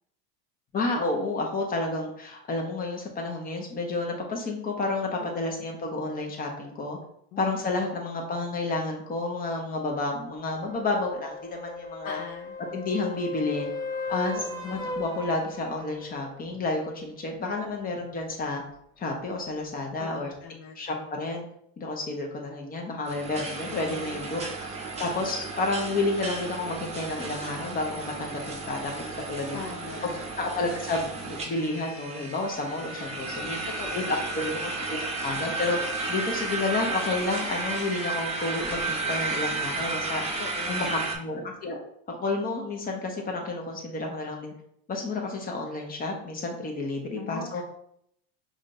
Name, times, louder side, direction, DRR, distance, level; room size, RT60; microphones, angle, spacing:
voice 1, 0.7-7.0 7.4-12.2 12.7-13.7 14.1-18.6 19.0-20.3 20.7-21.4 21.8-24.4 25.0-29.6 30.0-30.1 30.4-33.6 33.9-35.0 35.2-35.8 36.1-40.2 40.7-41.8 42.1-44.5 44.9-47.6, left 2 dB, 25° left, 1 dB, 0.9 m, -30 dB
voice 2, 5.2-5.7 7.3-8.1 12.0-12.6 14.3-14.8 20.0-21.2 23.7-24.3 29.5-30.2 33.8-34.3 40.4-41.0 47.2-47.6, left 6 dB, 60° left, 3 dB, 0.5 m, -41 dB
sound 1, 10.6-16.3 20.4-20.5, left 3 dB, 10° left, 0.5 m, -37 dB
sound 2, 23.1-41.2, right 3 dB, 20° right, 0.7 m, -33 dB
5.0 x 2.5 x 2.6 m, 0.71 s
supercardioid pair, 120°, 33 cm